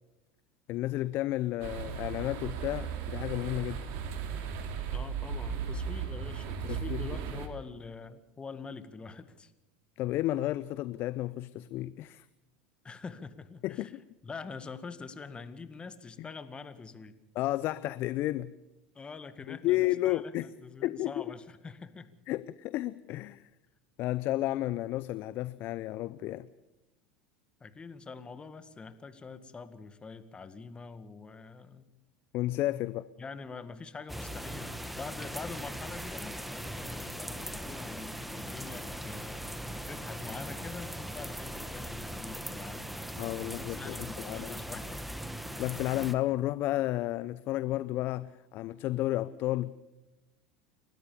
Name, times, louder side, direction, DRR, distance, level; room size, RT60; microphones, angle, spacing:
voice 1, 0.7-3.9 6.7-7.0 10.0-12.3 13.6-14.0 16.2-16.3 17.3-18.5 19.5-20.5 20.8-21.3 22.3-23.5 24.0-26.5 32.3-33.1 43.2-44.6 45.6-49.7, left 15 dB, 50° left, 16 dB, 0.7 m, -32 dB
sound 1, 1.6-7.5, right 7 dB, 60° right, 3.2 m, -36 dB
voice 2, 4.9-9.5 12.8-13.9 14.2-17.2 19.0-22.1 27.6-31.9 33.2-39.6 39.9-43.0 43.4-45.0, left 4 dB, 20° left, 12 dB, 1.9 m, -45 dB
sound 2, 34.1-46.1, equal, ahead, 1.8 m, -40 dB
29.5 x 13.5 x 7.1 m, 1.0 s
hypercardioid pair, 90°, 5 cm